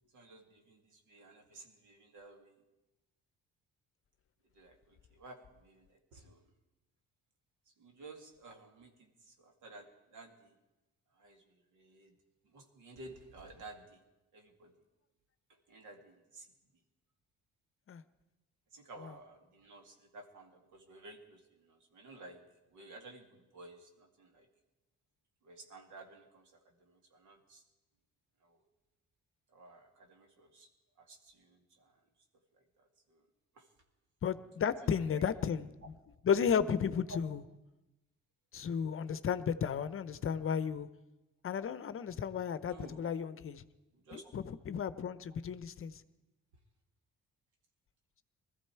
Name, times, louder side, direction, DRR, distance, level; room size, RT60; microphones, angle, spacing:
voice 1, 0.1-2.6 4.5-6.4 7.7-10.6 11.1-12.2 12.4-14.0 14.3-14.8 15.5-16.5 18.7-22.4 22.7-24.5 25.4-27.6 28.4-28.6 29.5-31.9 32.5-33.2 33.5-33.7 34.8-35.3 37.1-37.2 42.6-43.3 43.9-44.3, right 2 dB, 80° right, 2.3 m, -54 dB
voice 2, 34.2-35.7 36.2-37.4 38.5-40.9 41.4-43.6 44.1-46.0, left 7 dB, 45° left, 0.7 m, -33 dB
20.5 x 13.5 x 4.5 m
cardioid pair, 90°, 30 cm